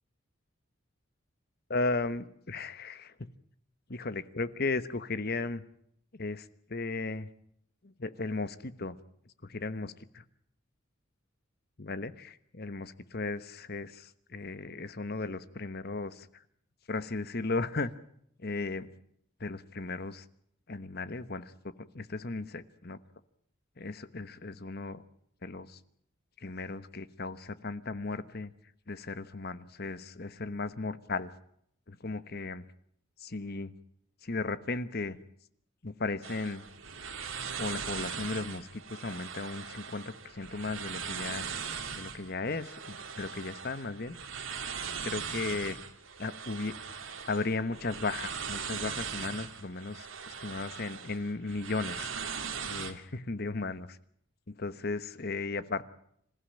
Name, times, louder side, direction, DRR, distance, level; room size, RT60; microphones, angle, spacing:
voice 1, 1.7-3.3 3.9-5.6 6.1-7.3 7.8-9.0 9.4-10.2 11.8-16.3 16.9-17.9 18.4-18.9 19.4-20.2 20.7-23.0 23.8-25.0 25.4-25.8 26.4-28.5 28.9-31.3 31.9-32.6 33.2-33.7 34.2-35.2 35.8-36.6 37.6-41.7 42.0-44.2 45.0-45.8 46.2-46.7 47.3-52.1 52.6-54.0 54.6-55.8, left 3 dB, 50° left, 14 dB, 1.2 m, -36 dB
sound 1, 36.2-52.9, right 6 dB, 80° right, 2.6 m, -40 dB
26.5 x 15.5 x 8.9 m, 0.70 s
head